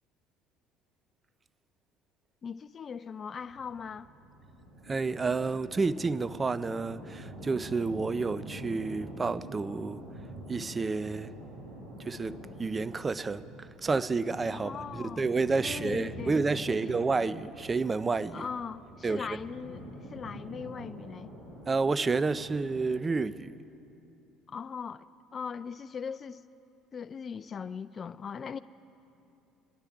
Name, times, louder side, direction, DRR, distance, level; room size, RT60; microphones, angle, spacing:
voice 1, 2.4-4.1 14.5-15.3 15.6-16.9 18.3-21.3 24.5-26.4 26.9-28.6, left 6 dB, 40° left, 0.3 m, -40 dB
sound 1, 3.4-23.0, right 1 dB, 85° right, 3.0 m, -45 dB
voice 2, 4.8-10.0 10.5-11.3 12.0-18.5 19.0-19.4 21.7-23.6, right 4 dB, 25° right, 0.4 m, -30 dB
24.5 x 10.5 x 3.6 m
hypercardioid pair, 60°, 0 cm